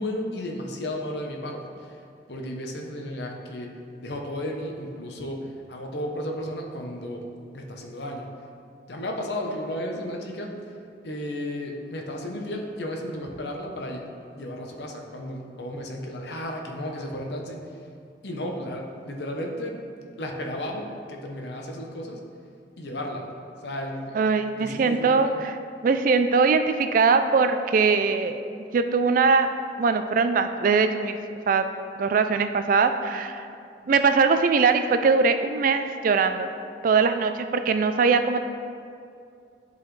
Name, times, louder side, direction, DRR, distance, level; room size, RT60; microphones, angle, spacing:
voice 1, 0.0-2.0 2.3-3.7 4.0-7.2 7.5-8.3 8.9-10.6 11.0-14.1 14.3-17.6 18.2-19.8 20.2-22.2 22.8-23.3 23.6-24.2 24.5-25.4, left 1 dB, 65° left, 1 dB, 0.8 m, -33 dB
voice 2, 24.1-25.3 25.8-28.4 28.7-29.5 29.8-31.2 31.5-31.6 32.0-33.4 33.9-36.5 36.8-38.4, right 4 dB, 45° right, 9 dB, 0.3 m, -21 dB
10.5 x 4.1 x 3.2 m, 2.4 s
head